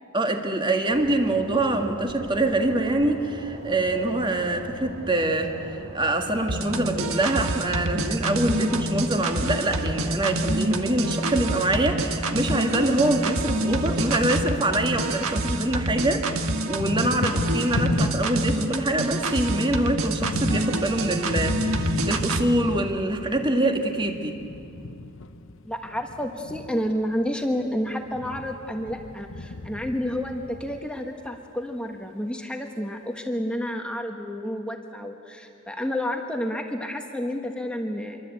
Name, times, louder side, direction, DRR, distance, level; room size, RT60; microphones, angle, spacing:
voice 1, 0.1-24.4, right 1 dB, 20° right, 4 dB, 2.0 m, -25 dB
sound 1, 0.9-15.0, right 1 dB, 50° right, 4.2 m, -39 dB
sound 2, 6.5-22.5, right 2 dB, 70° right, 1.6 m, -27 dB
Thunder, 14.5-15.7 16.0-31.3, left 2 dB, 65° left, 1.0 m, -35 dB
voice 2, 25.6-38.2, equal, 5° left, 3 dB, 1.4 m, -30 dB
26.5 x 24.0 x 8.5 m, 2.6 s
head